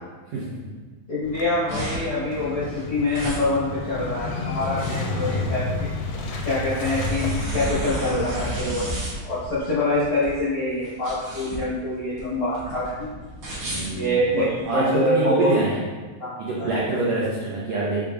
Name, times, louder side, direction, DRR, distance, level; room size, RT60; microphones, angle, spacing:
voice 1, 1.1-5.9 6.4-13.1 13.9-15.6 16.2-16.3 16.6-16.7, left 1 dB, 75° left, -10 dB, 1.3 m, -25 dB
Motorcycle / Engine starting, 1.3-8.5, left 3 dB, 90° left, 2.5 m, -31 dB
sound 1, 1.3-14.8, right 1 dB, 55° right, 1.3 m, -33 dB
voice 2, 4.9-5.5 13.6-14.2 14.7-15.8 16.4-18.1, right 2 dB, 85° right, -7 dB, 1.5 m, -26 dB
6.4 x 3.6 x 2.3 m, 1.3 s
omnidirectional pair, 4.1 m